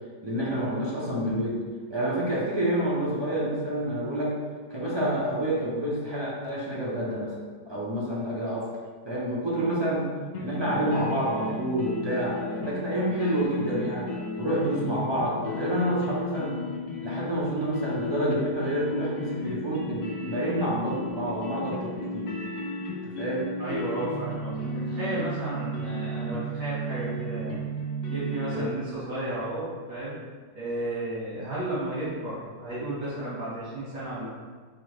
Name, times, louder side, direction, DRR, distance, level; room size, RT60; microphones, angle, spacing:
voice 1, 0.2-1.6 1.9-4.4 4.7-7.3 7.7-8.7 9.0-10.1 10.4-16.6 17.0-22.3 23.0-23.5 26.3-26.4 28.5-28.7, right 1 dB, 35° right, -7 dB, 0.4 m, -28 dB
sound 1, 10.3-28.6, equal, 80° left, 1.4 m, -34 dB
voice 2, 23.6-24.6 24.9-27.7 28.1-30.2 30.5-34.3, right 1 dB, 65° right, -10 dB, 2.2 m, -33 dB
4.9 x 3.3 x 3.2 m, 1.5 s
omnidirectional pair, 2.0 m